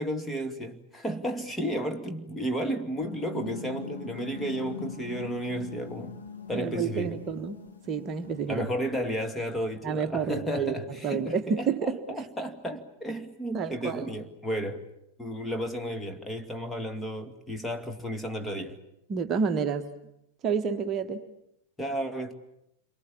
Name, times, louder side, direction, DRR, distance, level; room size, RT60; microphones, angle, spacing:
voice 1, 0.0-6.1 6.5-7.2 8.5-14.8 15.2-18.8 21.8-22.3, equal, 10° left, 2.2 m, -33 dB
sound 1, 2.9-8.6, left 5 dB, 75° left, 3.2 m, -42 dB
voice 2, 6.5-7.6 7.9-8.7 9.8-10.7 11.0-12.3 13.5-14.1 19.1-19.9 20.4-21.2, right 6 dB, 30° right, 1.4 m, -29 dB
29.0 x 23.5 x 8.6 m
figure-of-eight pair, 90°, 0 cm